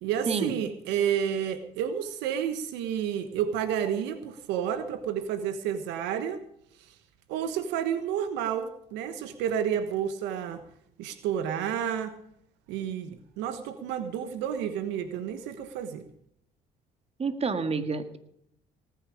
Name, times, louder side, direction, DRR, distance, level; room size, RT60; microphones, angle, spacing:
voice 1, 0.0-6.4 7.3-10.6 11.0-12.1 12.7-16.0, right 9 dB, 80° right, 10 dB, 1.2 m, -30 dB
voice 2, 17.2-18.2, right 4 dB, 35° right, 9 dB, 1.9 m, -29 dB
19.0 x 9.9 x 4.9 m, 0.71 s
supercardioid pair, 65°, 18 cm